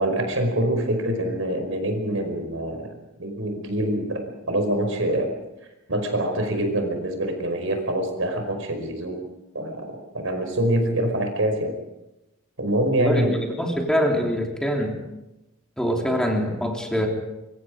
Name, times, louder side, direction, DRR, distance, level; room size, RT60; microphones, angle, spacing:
voice 1, 0.0-5.3 5.9-9.2 9.5-11.8 12.6-13.4, right 1 dB, 75° right, 5 dB, 5.1 m, -25 dB
voice 2, 13.0-15.0 15.8-17.1, equal, 5° left, 0 dB, 3.3 m, -24 dB
24.5 x 24.0 x 5.1 m, 0.96 s
head